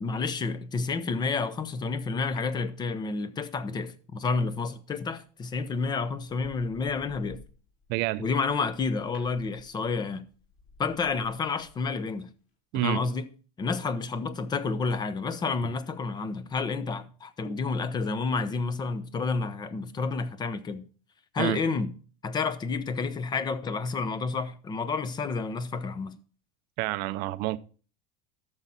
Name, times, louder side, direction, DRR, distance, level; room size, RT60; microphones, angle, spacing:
voice 1, 0.0-7.4 8.2-10.2 10.8-12.3 12.7-13.3 13.6-20.8 21.3-21.9 22.2-26.2, left 4 dB, 20° left, 0.8 m, -30 dB
sound 1, 2.4-3.4 5.3-5.5 6.0-12.2 12.5-12.6, left 3 dB, 45° left, 4.8 m, -54 dB
voice 2, 7.9-8.2 12.7-13.0 21.4-21.6 26.8-27.6, right 18 dB, 55° right, 0.6 m, -28 dB
12.0 x 7.2 x 4.1 m
supercardioid pair, 145°, 19 cm